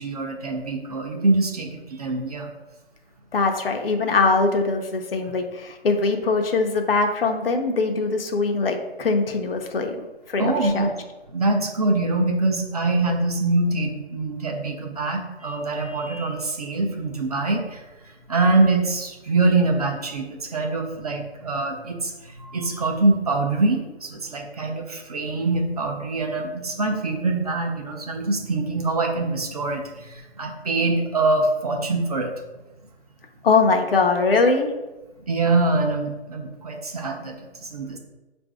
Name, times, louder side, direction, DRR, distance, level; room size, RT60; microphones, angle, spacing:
voice 1, 0.0-2.5 10.4-10.9 11.3-32.3 35.2-38.0, right 2 dB, 35° right, 2 dB, 0.5 m, -24 dB
voice 2, 3.3-10.9 33.4-34.7, left 3 dB, 60° left, 4 dB, 0.7 m, -22 dB
4.2 x 2.6 x 4.7 m, 1.1 s
hypercardioid pair, 160°, 33 cm